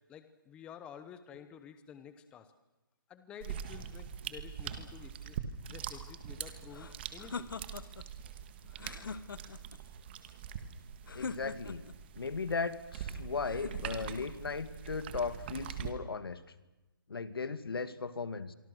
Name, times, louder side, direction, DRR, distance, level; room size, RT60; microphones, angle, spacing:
voice 1, 0.1-2.5 3.1-5.4 5.7-7.5, left 8 dB, 10° left, 11 dB, 0.9 m, -51 dB
sound 1, 3.4-15.9, right 8 dB, 30° right, 1.7 m, -43 dB
sound 2, 6.7-8.1 8.7-9.8 11.1-12.0 13.4-14.3, left 5 dB, 65° left, 1.4 m, -43 dB
voice 2, 11.1-11.8 12.2-16.4 17.1-18.5, left 4 dB, 85° left, 12 dB, 2.1 m, -37 dB
26.5 x 24.5 x 6.5 m, 1.0 s
hypercardioid pair, 165°, 12 cm